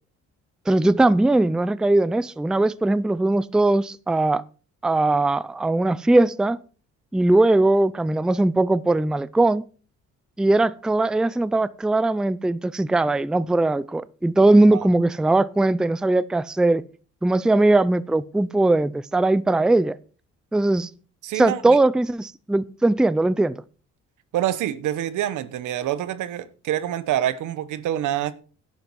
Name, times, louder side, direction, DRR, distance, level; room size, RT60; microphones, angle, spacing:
voice 1, 0.7-4.4 4.8-6.6 7.1-9.7 10.4-16.8 17.2-20.0 20.5-20.9 21.4-23.6, right 2 dB, ahead, 0.4 m, -20 dB
voice 2, 21.2-21.8 24.3-28.3, right 12 dB, 80° right, 1.0 m, -26 dB
11.0 x 9.0 x 4.6 m
cardioid pair, 90°, 30 cm